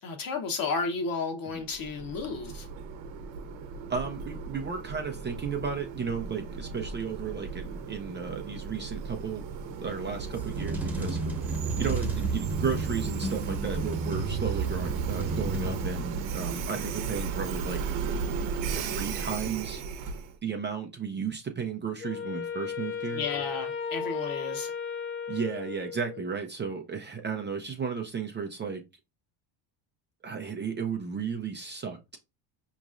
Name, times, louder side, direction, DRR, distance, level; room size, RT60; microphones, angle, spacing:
voice 1, 0.0-2.7 23.1-24.7, left 4 dB, 45° left, 1.1 m, -32 dB
Train, 1.6-20.3, right 5 dB, 65° right, 0.9 m, -35 dB
voice 2, 3.9-9.4 9.8-11.2 11.5-17.8 18.7-19.8 20.4-23.2 25.3-28.8 30.2-32.2, right 6 dB, 25° right, 0.5 m, -34 dB
sound 1, 10.2-16.2, right 4 dB, 5° right, 1.0 m, -32 dB
Wind instrument woodwind instrument, 22.0-26.4, left 6 dB, 30° left, 0.4 m, -35 dB
5.1 x 3.1 x 2.5 m
supercardioid pair, 110°, 49 cm